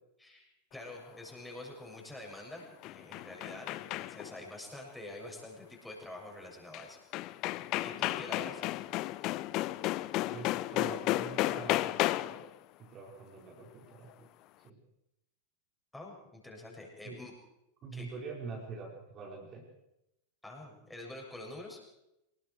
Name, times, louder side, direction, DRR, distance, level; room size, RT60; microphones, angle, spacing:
voice 1, 0.2-7.0 7.8-8.6 15.9-17.3 17.9-18.1 20.4-21.9, left 2 dB, 5° left, -1 dB, 7.3 m, -46 dB
sound 1, 2.6-4.4 6.7-6.8 7.1-12.5, left 17 dB, 40° left, 0.7 m, -33 dB
voice 2, 10.3-12.4 12.8-14.3 14.6-14.8 17.0-17.2 17.8-19.6, right 4 dB, 30° right, -1 dB, 5.4 m, -45 dB
26.5 x 20.5 x 4.8 m, 0.88 s
figure-of-eight pair, 90°, 0 cm